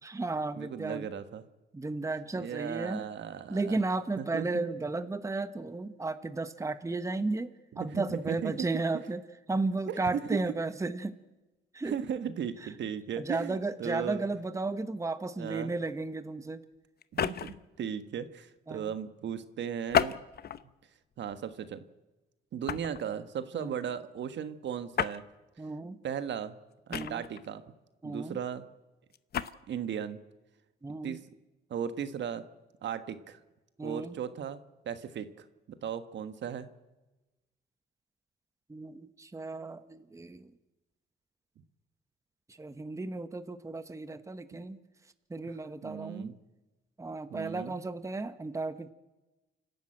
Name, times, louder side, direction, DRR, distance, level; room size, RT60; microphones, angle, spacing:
voice 1, 0.0-1.1 1.7-3.1 3.5-7.5 7.8-9.2 9.5-11.1 11.7-11.9 13.2-16.6 18.7-18.9 23.5-23.7 25.6-26.0 26.9-27.2 28.0-28.4 30.8-31.2 33.8-34.2 38.7-40.5 42.6-44.8 45.3-46.3 47.0-48.9, right 3 dB, 15° right, 11 dB, 1.1 m, -34 dB
voice 2, 0.5-1.4 2.3-3.8 4.2-4.4 7.7-8.7 9.9-10.4 11.8-14.3 15.4-15.7 17.1-20.2 21.2-21.8 22.5-25.2 26.0-26.5 26.9-27.6 28.0-28.7 29.4-30.2 31.0-31.2 31.7-32.4 32.8-33.4 33.8-34.6 34.8-36.7 45.8-46.3 47.3-47.8, right 8 dB, 65° right, 10 dB, 1.4 m, -36 dB
sound 1, 17.0-17.7 19.9-20.7 21.3-21.5 22.7-23.0 24.9-25.2 26.9-27.5 29.1-29.5, left 9 dB, 50° left, 0.8 m, -31 dB
28.5 x 12.5 x 8.9 m, 1.1 s
cardioid pair, 90°, 20 cm